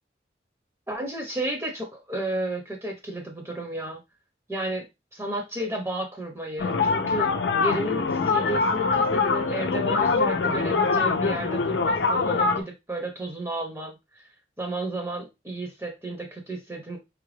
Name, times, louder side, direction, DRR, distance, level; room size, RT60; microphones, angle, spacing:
voice 1, 0.9-4.0 4.5-7.3 7.6-14.2 14.6-17.0, right 1 dB, 15° right, 2 dB, 0.8 m, -32 dB
sound 1, 6.6-12.6, left 4 dB, 85° left, 0.5 m, -24 dB
4.9 x 2.3 x 3.2 m, 0.22 s
head